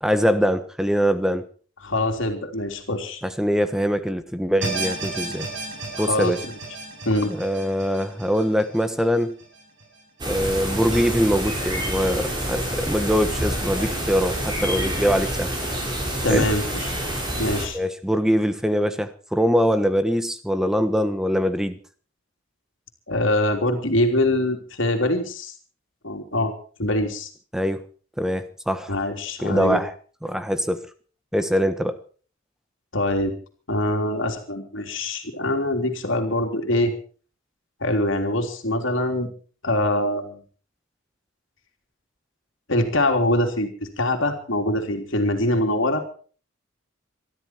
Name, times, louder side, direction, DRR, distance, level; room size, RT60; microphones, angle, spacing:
voice 1, 0.0-1.5 3.2-5.5 6.0-6.4 7.3-9.4 10.2-15.5 16.3-16.5 17.7-21.8 27.5-27.8 28.2-28.9 29.4-30.0 30.2-30.8 31.3-32.0, equal, ahead, 1.2 m, -23 dB
voice 2, 1.8-3.2 5.9-6.3 7.1-7.3 16.2-16.9 17.4-17.8 23.1-25.5 26.0-26.5 26.8-27.3 28.9-29.8 32.9-33.3 33.7-36.9 37.8-39.3 39.6-40.4 42.7-46.0, left 1 dB, 65° left, 3.4 m, -23 dB
sound 1, 4.6-9.8 10.2-10.3 10.9-11.0, right 2 dB, 60° right, 7.0 m, -33 dB
sound 2, 10.2-17.7, right 1 dB, 20° right, 5.1 m, -27 dB
22.0 x 13.5 x 4.5 m
head